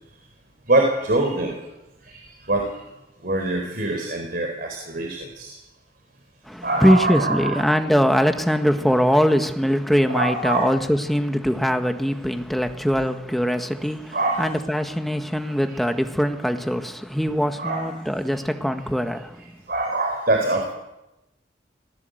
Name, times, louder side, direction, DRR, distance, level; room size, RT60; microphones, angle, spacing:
voice 1, 0.7-1.6 2.0-2.8 3.2-5.6 6.6-7.6 10.1-10.7 14.1-14.5 15.4-15.8 17.6-17.9 19.7-20.7, right 2 dB, 55° right, 4.1 m, -24 dB
voice 2, 6.4-19.5, equal, ahead, 1.6 m, -22 dB
26.0 x 18.0 x 8.0 m
head